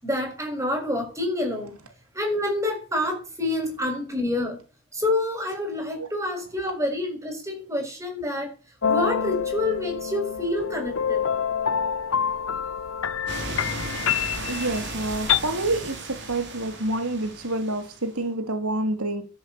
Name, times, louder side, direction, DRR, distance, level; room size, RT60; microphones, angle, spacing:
voice 1, 0.0-1.8 2.1-4.6 4.9-8.5 8.9-11.2, left 1 dB, 15° right, 7.1 m, -27 dB
sound 1, 8.8-15.4, left 7 dB, 60° left, 0.8 m, -27 dB
sound 2, 13.3-18.1, right 2 dB, 50° right, 5.9 m, -35 dB
voice 2, 14.5-16.0 16.3-19.2, right 2 dB, 80° right, 3.0 m, -27 dB
14.0 x 11.0 x 8.4 m
head